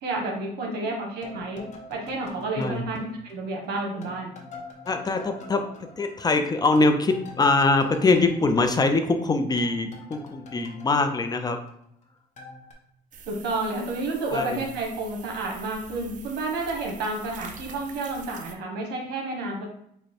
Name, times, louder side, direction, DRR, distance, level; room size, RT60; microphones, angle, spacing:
voice 1, 0.0-1.6 1.9-4.3 13.3-19.7, right 2 dB, 75° right, 0 dB, 1.3 m, -30 dB
sound 1, 1.2-3.7 4.0-9.3 9.6-12.0 12.4-12.7, left 3 dB, 45° left, 1.0 m, -45 dB
voice 2, 4.9-11.6 14.3-14.6, left 3 dB, 25° left, 6 dB, 0.6 m, -23 dB
sound 2, 13.1-18.5, right 5 dB, 50° right, 0.6 m, -45 dB
5.1 x 2.2 x 4.3 m, 0.71 s
cardioid pair, 110°, 17 cm